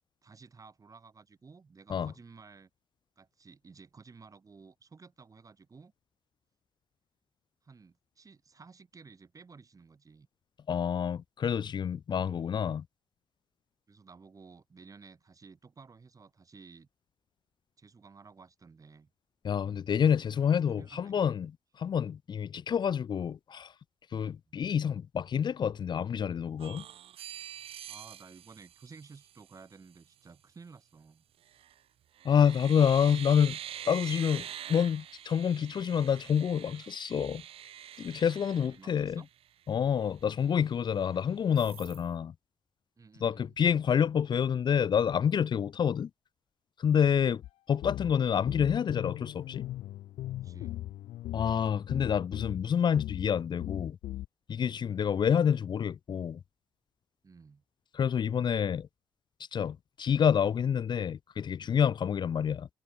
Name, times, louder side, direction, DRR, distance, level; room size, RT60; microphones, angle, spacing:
voice 1, 0.2-2.7 3.2-5.9 7.6-10.3 13.9-16.9 17.8-19.1 20.2-21.3 24.5-24.6 27.9-31.2 38.5-39.3 43.0-43.6 47.0-47.3 50.4-50.8 55.4-55.5 57.2-57.6, right 4 dB, 35° right, 4.5 m, -54 dB
voice 2, 10.7-12.8 19.4-21.5 21.8-23.7 24.1-26.8 32.2-33.6 33.9-37.4 38.0-39.2 39.7-42.3 43.2-46.1 46.8-47.4 47.7-49.6 51.3-54.0 54.5-56.4 57.9-58.9 59.5-62.7, left 8 dB, 50° left, 0.6 m, -28 dB
sound 1, 26.6-29.6 31.4-31.8 32.2-39.4 39.9-40.0 40.2-41.1 41.6-42.0, right 11 dB, 75° right, 3.4 m, -45 dB
sound 2, 47.4-47.5 47.8-52.6 53.0-53.3 53.6-54.3, left 14 dB, 85° left, 1.0 m, -39 dB
cardioid pair, 80°, 10 cm